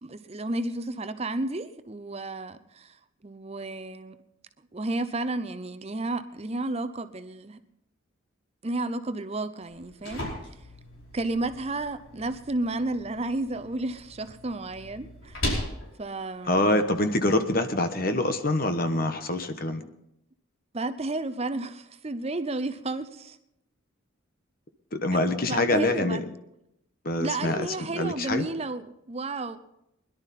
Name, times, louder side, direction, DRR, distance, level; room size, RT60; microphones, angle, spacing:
voice 1, 0.0-4.2 4.7-7.6 8.6-10.6 11.1-15.4 16.0-16.6 20.7-23.4 25.5-26.2 27.2-29.6, right 2 dB, 30° right, 0.7 m, -32 dB
sound 1, 9.6-17.6, left 1 dB, 65° left, 5.0 m, -38 dB
voice 2, 16.5-19.8 24.9-26.2 27.0-28.5, left 1 dB, 45° left, 1.1 m, -25 dB
21.5 x 11.5 x 4.2 m
head